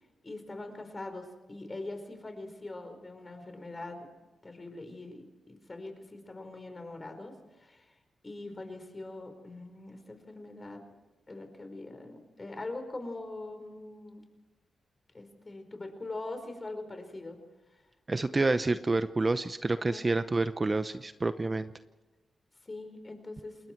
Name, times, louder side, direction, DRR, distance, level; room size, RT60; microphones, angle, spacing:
voice 1, 0.2-4.1 4.4-8.0 8.2-10.8 11.3-14.2 15.1-17.4 17.7-17.8 19.8-20.1 22.6-23.6, left 2 dB, 30° left, 6 dB, 4.9 m, -42 dB
voice 2, 18.1-21.7, right 3 dB, 30° right, 11 dB, 0.8 m, -28 dB
28.5 x 21.0 x 4.6 m, 1.2 s
cardioid pair, 85°, 0 cm